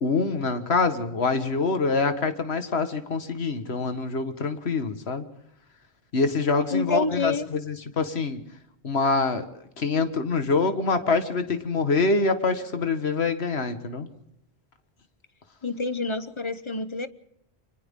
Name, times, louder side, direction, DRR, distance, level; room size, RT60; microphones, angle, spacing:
voice 1, 0.0-5.3 6.1-8.4 8.8-9.5 9.8-14.1, left 4 dB, 75° left, 9 dB, 1.8 m, -25 dB
voice 2, 6.7-7.5 15.6-17.1, left 3 dB, 30° left, 13 dB, 0.9 m, -28 dB
29.5 x 24.0 x 3.7 m, 0.76 s
omnidirectional pair, 1.1 m